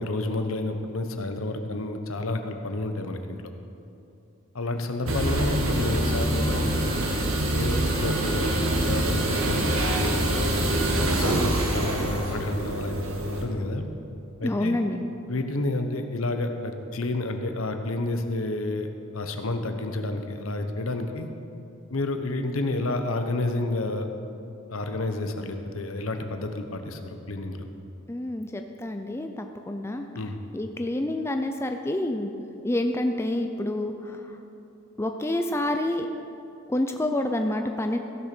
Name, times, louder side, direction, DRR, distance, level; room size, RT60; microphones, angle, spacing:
voice 1, 0.0-3.4 4.5-7.0 7.5-8.5 8.8-13.9 14.4-14.8 15.3-21.3 21.9-24.1 24.7-27.7 30.1-30.3, left 2 dB, 75° left, 6 dB, 1.0 m, -30 dB
sound 1, 5.1-13.4, right 1 dB, 75° right, 1.6 m, -25 dB
voice 2, 14.4-15.0 28.1-30.0 30.5-32.3 32.6-33.9 35.0-36.1 36.7-38.0, left 1 dB, 10° left, 5 dB, 0.4 m, -28 dB
15.0 x 6.7 x 6.1 m, 2.7 s
head